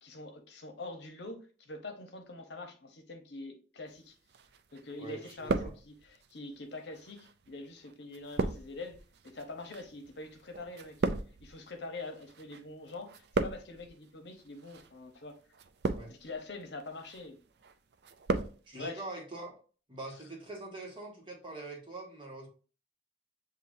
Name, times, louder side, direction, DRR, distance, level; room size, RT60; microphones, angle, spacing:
voice 1, 0.0-4.1 4.7-11.0 11.4-15.3 16.1-17.4 18.7-19.0, left 2 dB, 70° left, 5 dB, 0.9 m, -45 dB
sound 1, 4.3-4.9 5.2-6.2 7.0-12.6 12.9-13.9 14.6-14.9 15.5-16.3 16.8-17.2 17.6-18.6 18.8-18.9, right 3 dB, 60° right, 0.4 m, -35 dB
voice 2, 5.0-5.7 16.0-16.1 18.7-19.5 19.9-22.5, right 2 dB, 25° right, -2 dB, 1.5 m, -43 dB
6.9 x 2.7 x 2.6 m, 0.37 s
head